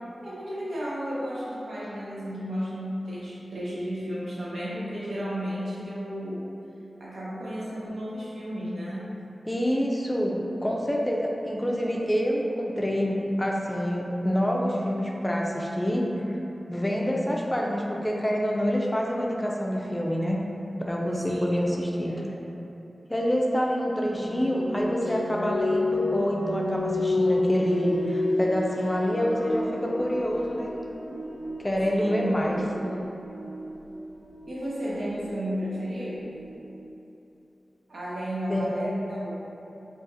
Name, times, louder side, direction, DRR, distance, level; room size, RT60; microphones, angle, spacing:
voice 1, 0.2-6.4 7.0-9.1 21.3-21.8 22.0-22.2 25.1-25.2 31.9-32.3 32.8-33.1 34.4-36.3 37.9-39.4, equal, 85° right, -8 dB, 0.8 m, -33 dB
voice 2, 9.5-16.4 16.7-20.4 20.8-22.1 23.1-30.7 31.6-32.6 38.5-38.7, equal, 15° left, -1 dB, 0.4 m, -27 dB
sound 1, 24.0-36.6, left 2 dB, 85° left, 0.4 m, -31 dB
2.5 x 2.4 x 3.9 m, 3.0 s
wide cardioid pair, 85°, 0 cm